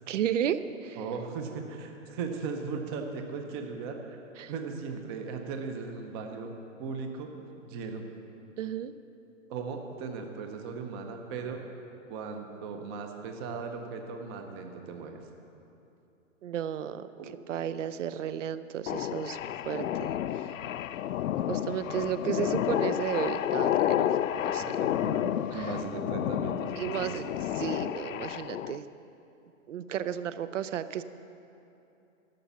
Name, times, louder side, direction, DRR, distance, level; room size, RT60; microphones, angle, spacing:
voice 1, 0.1-1.0 4.4-4.5 8.6-8.9 16.4-17.1 17.5-19.4 19.7-20.5 21.5-24.6 25.5-25.7 26.8-27.2 27.6-28.9 29.7-31.0, right 9 dB, 65° right, 13 dB, 0.6 m, -33 dB
voice 2, 0.9-4.2 4.5-6.5 6.8-7.3 7.6-8.0 9.5-11.6 12.1-15.2 17.2-17.3 24.6-27.3, right 5 dB, 20° right, 4 dB, 0.6 m, -37 dB
sound 1, 18.9-28.8, left 11 dB, 75° left, 0.5 m, -30 dB
11.5 x 6.5 x 7.0 m, 2.9 s
hypercardioid pair, 145°, 40 cm